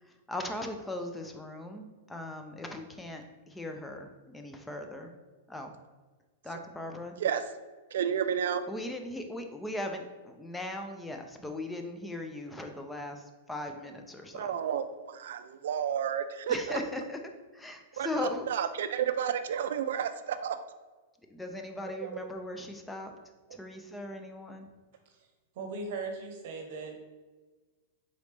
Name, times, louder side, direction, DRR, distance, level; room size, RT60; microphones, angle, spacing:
voice 1, 0.0-5.1 5.5-5.7 6.4-7.2 8.7-14.6 16.5-17.2 17.5-18.5 21.3-23.1 23.5-24.7, left 1 dB, 5° left, 4 dB, 0.4 m, -39 dB
voice 2, 7.9-8.6 14.3-16.8 18.0-18.1 18.5-20.6 22.0-22.1, right 8 dB, 75° right, 10 dB, 0.3 m, -31 dB
voice 3, 25.5-27.0, right 3 dB, 60° right, 3 dB, 0.8 m, -38 dB
4.0 x 3.1 x 3.2 m, 1.3 s
supercardioid pair, 145°, 0 cm